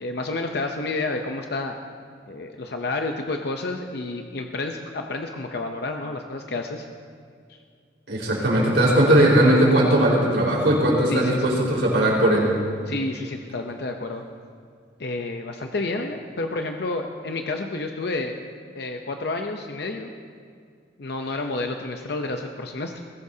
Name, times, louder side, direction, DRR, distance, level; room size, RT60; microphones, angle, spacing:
voice 1, 0.0-1.7 2.3-6.9 7.5-7.6 11.1-11.6 12.9-14.2 15.0-18.3 18.7-20.1 21.0-23.0, left 2 dB, 65° left, 4 dB, 0.7 m, -30 dB
voice 2, 8.1-12.5, right 1 dB, 80° right, -4 dB, 4.6 m, -18 dB
20.5 x 16.5 x 2.8 m, 2.2 s
head